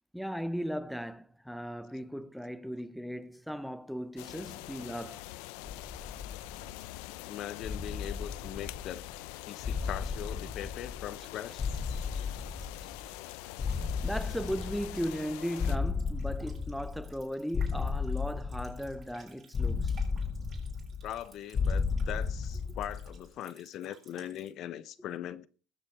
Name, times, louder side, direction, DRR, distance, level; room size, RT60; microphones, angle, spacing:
voice 1, 0.1-5.3 14.0-20.0, equal, ahead, 0.8 m, -37 dB
sound 1, 4.2-15.8, left 19 dB, 85° left, 0.6 m, -44 dB
sound 2, 5.6-7.0 7.6-9.2 9.6-11.3 11.6-13.2 13.6-15.2 15.6-17.2 17.5-19.1 19.5-21.2 21.5-23.2, left 5 dB, 30° left, 2.0 m, -34 dB
voice 2, 7.2-9.0 9.5-11.7 21.0-25.5, left 11 dB, 55° left, 0.9 m, -40 dB
Water tap faucet, 11.2-24.5, right 5 dB, 35° right, 6.6 m, -60 dB
20.5 x 7.4 x 4.8 m
cardioid pair, 115°, 0 cm